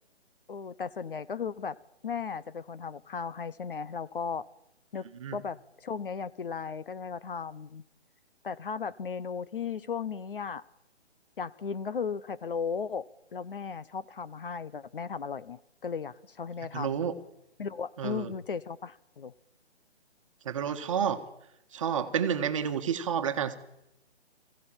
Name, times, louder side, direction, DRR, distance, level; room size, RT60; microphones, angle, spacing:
voice 1, 0.5-1.8 2.0-4.5 4.9-5.0 5.3-7.8 8.4-10.6 11.4-17.0 17.6-19.3, left 6 dB, 50° left, 16 dB, 0.9 m, -36 dB
voice 2, 16.7-17.1 18.0-18.3 20.4-21.2 21.7-23.6, right 8 dB, 30° right, 8 dB, 1.5 m, -30 dB
23.5 x 15.5 x 8.9 m, 0.84 s
hypercardioid pair, 165°, 34 cm